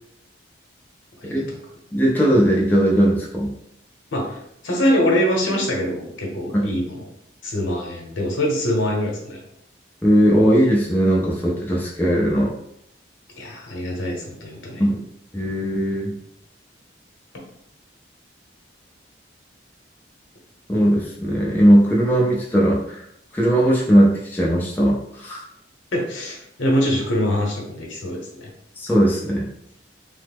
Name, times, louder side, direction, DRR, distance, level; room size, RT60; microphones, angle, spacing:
voice 1, 1.2-1.6 4.1-7.1 7.4-9.4 13.3-14.9 25.9-28.5, equal, 85° left, -1 dB, 0.9 m, -24 dB
voice 2, 1.9-3.5 6.5-6.7 10.0-12.5 14.8-15.0 15.3-16.2 20.7-23.0 23.3-25.4 28.8-29.5, equal, 10° left, -4 dB, 0.4 m, -18 dB
3.2 x 2.0 x 3.4 m, 0.75 s
head